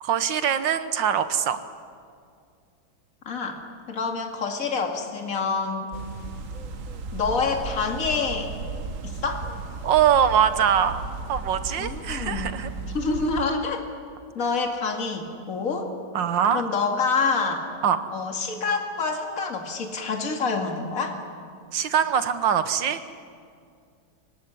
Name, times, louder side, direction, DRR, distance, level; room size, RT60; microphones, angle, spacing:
voice 1, 0.0-1.6 9.8-11.0 11.3-12.7 16.2-16.6 17.8-18.0 21.7-23.0, right 8 dB, 80° right, 11 dB, 1.9 m, -22 dB
voice 2, 3.3-3.6 3.9-5.9 7.1-8.5 9.0-9.5 11.8-12.6 12.9-13.8 14.3-15.9 16.5-17.6 18.1-21.2, left 4 dB, 50° left, 3 dB, 2.6 m, -27 dB
sound 1, 5.9-13.5, right 4 dB, 50° right, 1.5 m, -35 dB
24.0 x 19.0 x 9.9 m, 2.3 s
omnidirectional pair, 1.9 m